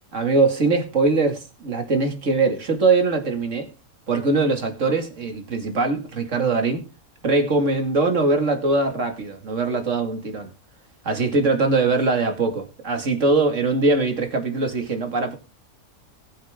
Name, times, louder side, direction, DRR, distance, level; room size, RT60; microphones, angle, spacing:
voice 1, 0.1-3.7 4.1-6.8 7.2-10.5 11.0-15.4, right 3 dB, 55° right, 2.6 m, -22 dB
21.0 x 8.2 x 3.7 m
omnidirectional pair, 1.6 m